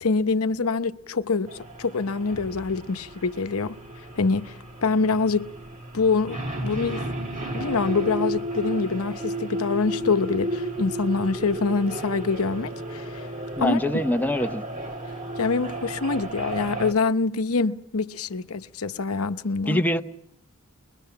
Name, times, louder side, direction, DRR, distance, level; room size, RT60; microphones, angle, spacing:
voice 1, 0.0-3.8 4.2-5.5 5.9-7.0 7.5-13.3 13.6-13.8 15.4-19.8, left 4 dB, 80° left, 0.8 m, -25 dB
sound 1, 1.5-16.9, right 1 dB, 35° right, 1.7 m, -33 dB
voice 2, 13.6-14.6 19.7-20.0, left 1 dB, 10° left, 0.8 m, -23 dB
24.0 x 21.5 x 5.8 m
head